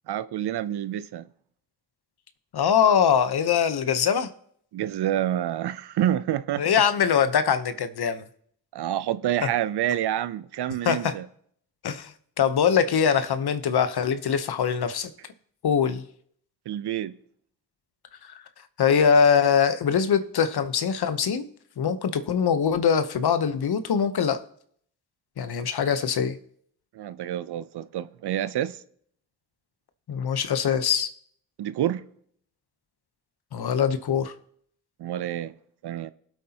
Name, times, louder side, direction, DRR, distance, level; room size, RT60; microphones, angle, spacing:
voice 1, 0.1-1.3 4.7-6.6 8.7-11.3 16.7-17.2 26.9-28.8 31.6-32.0 35.0-35.5 35.8-36.1, right 11 dB, 75° right, 0.6 m, -28 dB
voice 2, 2.5-4.3 6.6-8.2 10.8-11.2 11.8-15.1 15.6-16.1 18.2-18.3 18.8-21.5 21.8-24.4 25.4-26.4 30.1-31.1 33.5-34.3, left 7 dB, 70° left, 1.0 m, -23 dB
19.5 x 8.1 x 2.9 m
supercardioid pair, 45°, 40 cm